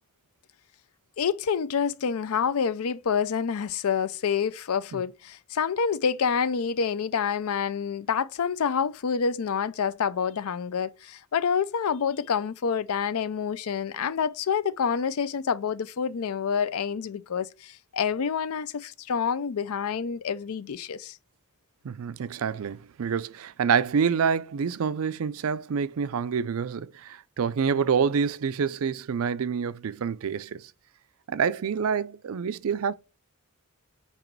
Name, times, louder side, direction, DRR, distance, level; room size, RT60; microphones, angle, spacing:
voice 1, 1.2-21.2, left 6 dB, 75° left, 0.5 m, -27 dB
voice 2, 21.8-30.7 31.3-32.9, right 6 dB, 65° right, 0.4 m, -27 dB
8.9 x 3.0 x 4.5 m
head